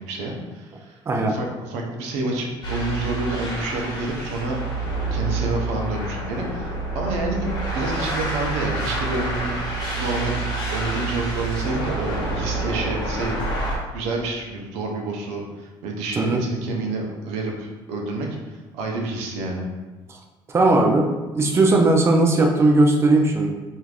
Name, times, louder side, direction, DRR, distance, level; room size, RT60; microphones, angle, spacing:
voice 1, 0.0-4.6 5.1-9.5 10.0-10.4 10.7-13.4 13.9-19.7, right 2 dB, 85° right, 0 dB, 0.6 m, -28 dB
sound 1, 2.6-13.8, right 2 dB, 40° left, 1.0 m, -28 dB
voice 2, 20.5-21.1 21.3-23.5, right 2 dB, 25° right, 1 dB, 0.4 m, -18 dB
3.2 x 2.5 x 2.3 m, 1.2 s
supercardioid pair, 90°, 10 cm